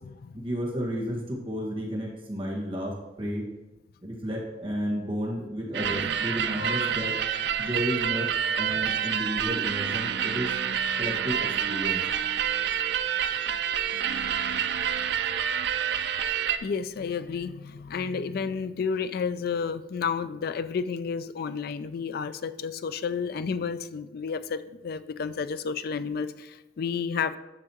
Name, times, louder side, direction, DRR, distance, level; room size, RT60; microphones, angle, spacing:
voice 1, 0.3-3.4 4.0-7.1 7.6-8.3 8.6-10.5 11.0-12.0, equal, 30° right, -3 dB, 1.6 m, -32 dB
sound 1, 5.7-16.6, right 8 dB, 65° right, 0.4 m, -28 dB
voice 2, 6.6-6.9 15.9-16.3 16.6-27.4, left 5 dB, 60° left, 13 dB, 0.4 m, -31 dB
9.9 x 6.3 x 3.0 m, 1.0 s
head